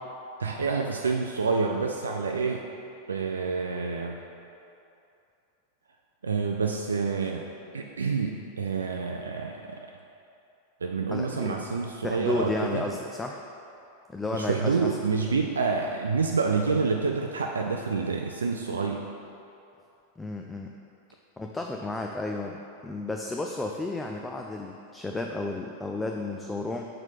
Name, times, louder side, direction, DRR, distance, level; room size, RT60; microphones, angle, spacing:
voice 1, 0.4-2.6 3.1-4.2 6.2-7.5 7.7-9.8 10.8-12.8 14.3-19.0, right 4 dB, 70° right, 1 dB, 0.4 m, -28 dB
voice 2, 11.1-11.6 12.0-13.4 14.1-15.0 20.2-20.7 21.4-26.9, left 2 dB, 10° left, 1 dB, 0.3 m, -32 dB
5.0 x 4.5 x 5.8 m, 2.7 s
figure-of-eight pair, 90°, 0 cm